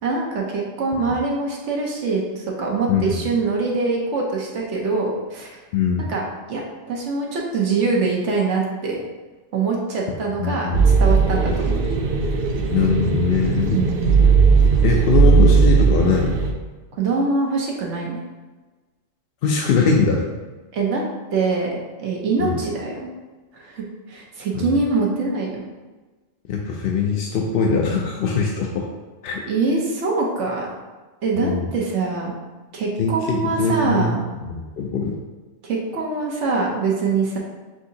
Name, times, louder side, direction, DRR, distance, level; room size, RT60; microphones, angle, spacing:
voice 1, 0.0-5.6 6.0-6.2 6.5-6.6 6.9-9.0 9.5-10.7 11.0-11.8 13.7-14.3 16.9-18.2 20.7-21.0 21.3-23.1 23.5-25.6 29.5-30.7 31.2-32.3 32.7-34.2 35.6-37.4, right 3 dB, 80° right, -2 dB, 1.1 m, -24 dB
voice 2, 2.9-3.2 5.7-6.1 10.4-10.8 11.5-11.6 12.7-13.8 14.8-16.3 19.4-20.2 22.4-22.6 24.5-24.7 26.5-28.9 29.2-29.4 31.4-31.6 33.0-34.2 34.4-35.2, left 5 dB, 60° left, -1 dB, 0.7 m, -21 dB
sound 1, 10.7-16.5, right 5 dB, 60° right, 0.7 m, -17 dB
6.1 x 2.7 x 2.7 m, 1.2 s
omnidirectional pair, 1.2 m